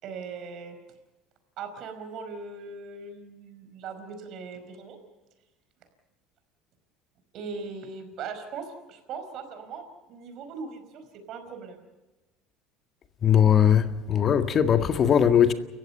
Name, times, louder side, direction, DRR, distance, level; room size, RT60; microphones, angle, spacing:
voice 1, 0.0-0.8 1.6-5.0 7.3-11.8, right 5 dB, 60° right, 4.9 m, -39 dB
voice 2, 13.2-15.5, left 8 dB, 45° left, 1.9 m, -20 dB
30.0 x 15.0 x 6.9 m
hypercardioid pair, 75°, 0 cm